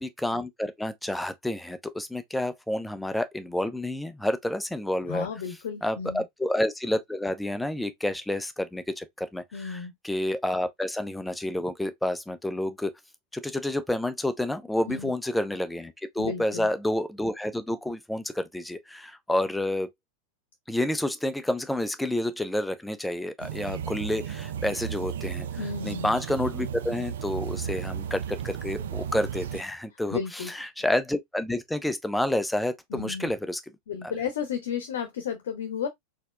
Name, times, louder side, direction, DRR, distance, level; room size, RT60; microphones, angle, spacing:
voice 1, 0.0-5.3 5.8-12.9 13.3-19.9 20.7-25.5 25.8-33.6, left 1 dB, 5° left, 0.7 m, -29 dB
voice 2, 5.1-6.2 9.5-9.9 14.9-15.1 16.2-16.7 25.6-26.1 30.1-30.7 32.9-33.3 33.9-35.9, left 7 dB, 60° left, 0.9 m, -33 dB
sound 1, 23.4-29.6, right 8 dB, 60° right, 0.4 m, -34 dB
4.4 x 3.8 x 2.2 m
figure-of-eight pair, 90°, 0 cm